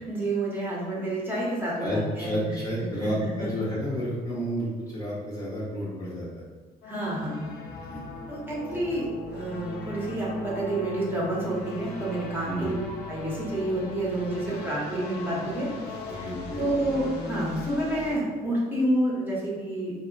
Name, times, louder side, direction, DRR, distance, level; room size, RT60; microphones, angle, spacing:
voice 1, 0.1-2.5 3.0-3.1 3.4-3.5 6.8-7.5 8.3-12.7 13.1-16.3 16.6-19.9, right 1 dB, 10° right, -6 dB, 0.9 m, -29 dB
voice 2, 1.8-6.3 7.7-8.2 8.9-9.0 12.5-12.8 16.2-16.6, equal, 20° left, -8 dB, 0.7 m, -31 dB
sound 1, 6.8-18.2, left 2 dB, 75° left, 0.4 m, -38 dB
2.1 x 2.0 x 3.8 m, 1.4 s
cardioid pair, 110°, 17 cm